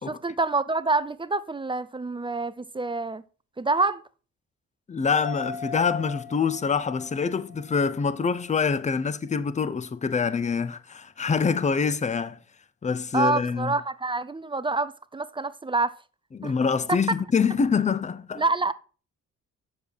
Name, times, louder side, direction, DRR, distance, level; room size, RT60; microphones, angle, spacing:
voice 1, 0.1-3.2 3.6-4.0 13.1-15.9 16.4-16.5 18.4-18.7, right 3 dB, 15° right, 0.5 m, -27 dB
voice 2, 4.9-12.4 12.8-13.7 16.3-18.4, left 5 dB, 25° left, 0.7 m, -25 dB
sound 1, 5.2-8.9 9.3-9.4, left 5 dB, 80° left, 1.8 m, -40 dB
7.0 x 6.9 x 4.7 m
cardioid pair, 90°, 30 cm